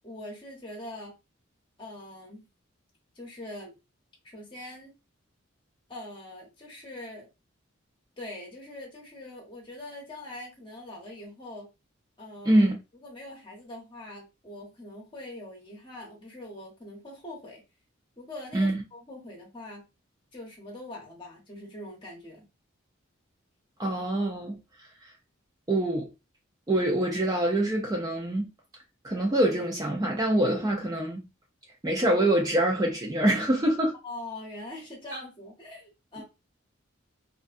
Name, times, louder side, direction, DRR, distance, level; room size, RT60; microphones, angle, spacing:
voice 1, 0.0-1.1 1.8-2.4 3.1-3.7 4.2-4.9 5.9-7.3 8.2-11.7 12.2-12.6 12.9-17.6 18.2-19.8 20.3-22.5 34.0-36.2, left 1 dB, 25° left, 0.9 m, -43 dB
voice 2, 12.5-12.8 18.5-18.8 23.8-24.6 25.7-26.1 26.7-28.5 29.0-31.2 31.8-33.9 35.1-35.2, right 1 dB, 20° right, 0.4 m, -25 dB
2.5 x 2.1 x 2.4 m
head